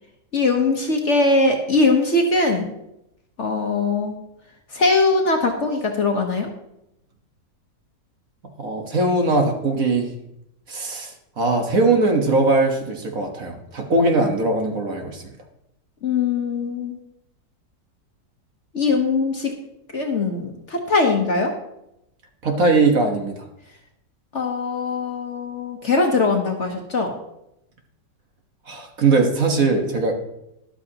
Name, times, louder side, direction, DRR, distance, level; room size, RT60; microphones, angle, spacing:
voice 1, 0.3-2.7 3.4-4.2 4.7-6.5 16.0-17.0 18.7-19.5 19.9-21.5 24.3-27.1, left 3 dB, 45° left, 3 dB, 1.2 m, -21 dB
voice 2, 8.6-10.1 10.7-15.2 22.4-23.4 28.7-30.1, right 3 dB, 50° right, 3 dB, 1.7 m, -20 dB
13.0 x 11.5 x 2.9 m, 0.84 s
omnidirectional pair, 1.9 m